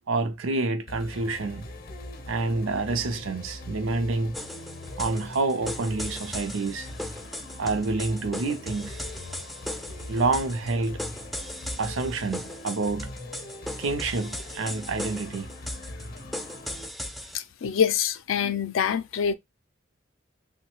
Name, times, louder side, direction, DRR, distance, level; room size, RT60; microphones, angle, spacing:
voice 1, 0.1-1.7 2.3-4.4 5.0-6.9 7.6-9.0 10.1-11.0 11.8-13.1 13.8-15.5 18.4-18.6, right 3 dB, 85° right, 0.5 m, -28 dB
sound 1, 0.9-16.9, left 1 dB, 50° left, 0.6 m, -41 dB
sound 2, 4.3-17.4, left 1 dB, ahead, 0.3 m, -38 dB
voice 2, 17.3-19.3, left 7 dB, 85° left, 0.4 m, -25 dB
3.1 x 2.2 x 2.9 m
head